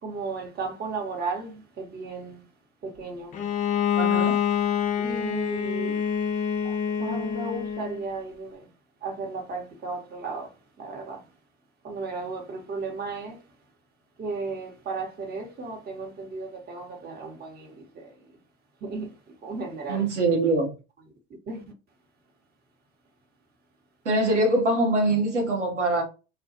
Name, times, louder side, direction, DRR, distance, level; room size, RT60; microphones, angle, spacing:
voice 1, 0.0-2.5 2.8-3.4 5.0-6.1 6.6-8.7 9.0-11.3 11.8-13.5 14.2-18.4 18.8-20.1 21.5-21.7, right 3 dB, 30° right, 0.9 m, -35 dB
Bowed string instrument, 3.3-8.0, left 8 dB, 25° left, 0.4 m, -26 dB
voice 2, 4.0-4.4 19.9-20.7 24.0-26.0, right 2 dB, 90° right, 0.7 m, -23 dB
2.3 x 2.1 x 2.7 m
figure-of-eight pair, 75°, 34 cm